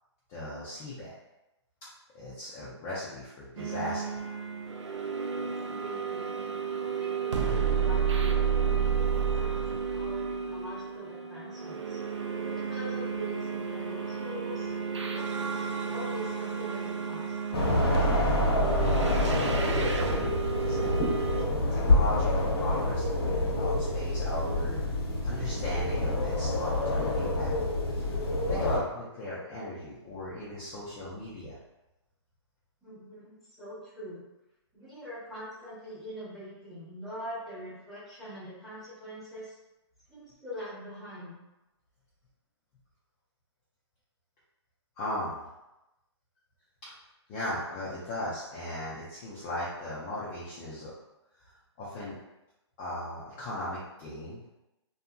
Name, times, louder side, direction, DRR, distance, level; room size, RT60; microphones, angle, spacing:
voice 1, 0.3-1.2 2.1-4.0 19.0-20.9 21.7-24.8 25.2-27.5 27.9-28.2 28.5-31.6 45.0-45.5 46.8-46.9 47.3-50.9 51.8-52.2 52.8-54.4, left 1 dB, 20° left, -8 dB, 0.4 m, -37 dB
sound 1, 3.6-21.4, right 6 dB, 90° right, 0.4 m, -31 dB
voice 2, 5.3-6.3 6.9-12.0 12.4-14.7 15.1-15.2 15.5-17.4 32.8-34.2 34.7-39.6 40.1-41.4, equal, ahead, -10 dB, 0.8 m, -43 dB
sound 2, 17.5-28.8, left 1 dB, 60° left, 0.7 m, -27 dB
2.7 x 2.6 x 2.2 m, 0.97 s
hypercardioid pair, 150°, 15 cm